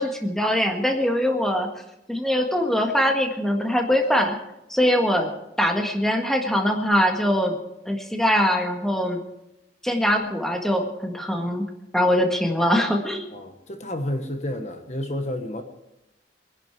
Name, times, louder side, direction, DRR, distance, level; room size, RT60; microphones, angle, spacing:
voice 1, 0.0-1.7 2.1-4.4 4.7-5.3 5.6-7.6 7.8-9.2 9.8-11.6 11.9-13.2, equal, ahead, 2 dB, 1.6 m, -22 dB
voice 2, 13.3-15.6, left 1 dB, 40° left, 6 dB, 1.2 m, -30 dB
23.0 x 11.0 x 4.6 m, 0.89 s
head